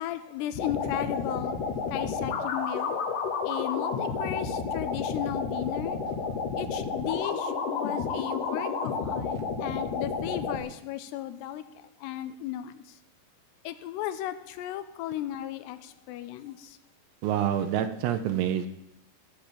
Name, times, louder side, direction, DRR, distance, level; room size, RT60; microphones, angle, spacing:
voice 1, 0.0-3.1 3.4-6.0 6.6-13.0 13.6-16.8, left 12 dB, 85° left, 12 dB, 2.7 m, -35 dB
sound 1, 0.5-10.6, left 5 dB, 65° left, 2.4 m, -31 dB
voice 2, 17.2-18.7, right 10 dB, 85° right, 8 dB, 2.9 m, -27 dB
14.5 x 5.0 x 7.4 m, 0.79 s
omnidirectional pair, 4.9 m